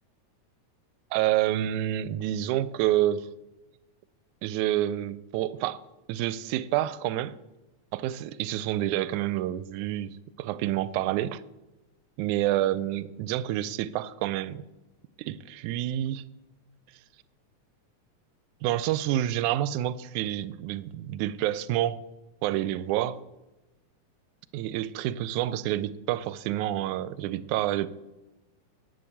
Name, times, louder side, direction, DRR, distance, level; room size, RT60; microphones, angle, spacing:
voice 1, 1.1-3.3 4.4-5.8 6.1-7.4 7.9-11.4 12.2-14.6 15.2-16.2 18.6-22.0 22.4-23.2 24.5-27.9, right 13 dB, 80° right, 17 dB, 1.9 m, -28 dB
11.0 x 7.6 x 8.4 m, 1.1 s
omnidirectional pair, 3.5 m